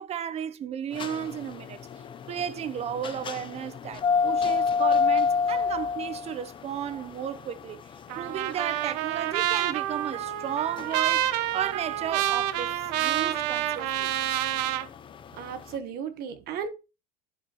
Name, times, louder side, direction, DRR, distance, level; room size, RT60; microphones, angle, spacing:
voice 1, 0.0-1.9 2.3-7.8 8.2-14.1, right 9 dB, 30° right, 0.7 m, -34 dB
sound 1, 0.9-15.6, left 5 dB, 25° left, 0.6 m, -29 dB
Trumpet, 8.1-14.9, right 13 dB, 80° right, 0.9 m, -28 dB
voice 2, 15.4-16.7, right 7 dB, 50° right, 1.2 m, -35 dB
11.5 x 5.8 x 3.0 m
supercardioid pair, 135°, 21 cm